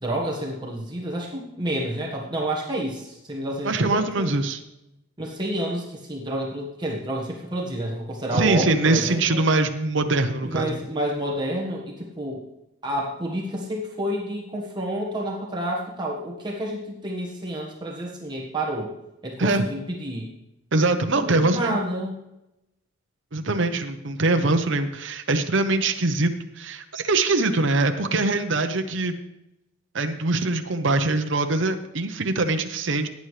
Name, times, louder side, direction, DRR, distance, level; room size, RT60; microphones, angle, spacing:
voice 1, 0.0-4.3 5.2-9.4 10.4-12.4 12.8-18.9 19.2-20.3 21.1-22.2, right 1 dB, 20° right, -2 dB, 1.5 m, -29 dB
voice 2, 3.6-4.6 8.3-10.8 19.4-19.7 20.7-21.8 23.3-29.2 29.9-33.1, right 2 dB, 60° right, 6 dB, 0.8 m, -23 dB
17.0 x 9.4 x 3.3 m, 0.89 s
head